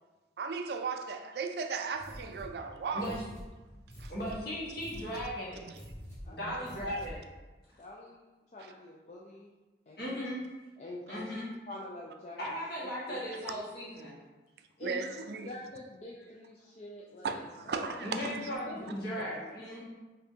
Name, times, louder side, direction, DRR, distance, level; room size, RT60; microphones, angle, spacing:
voice 1, 0.4-3.2 4.0-4.1 5.6-5.8 6.5-6.6 14.8-15.5 17.2-18.4, right 5 dB, 65° right, 6 dB, 0.3 m, -36 dB
sound 1, 1.9-7.4, equal, 15° left, 1.1 m, -47 dB
voice 2, 4.1-5.6 6.3-7.2 10.0-10.4 11.1-11.5 12.4-14.1 18.0-19.8, equal, 65° left, -7 dB, 1.5 m, -37 dB
voice 3, 6.2-6.9 7.8-8.3 8.5-9.5 9.9-10.2 10.8-11.4 11.7-12.4 12.8-13.6 14.8-18.0 18.7-19.5, left 1 dB, 40° left, -4 dB, 0.4 m, -47 dB
5.5 x 2.6 x 2.7 m, 1.2 s
head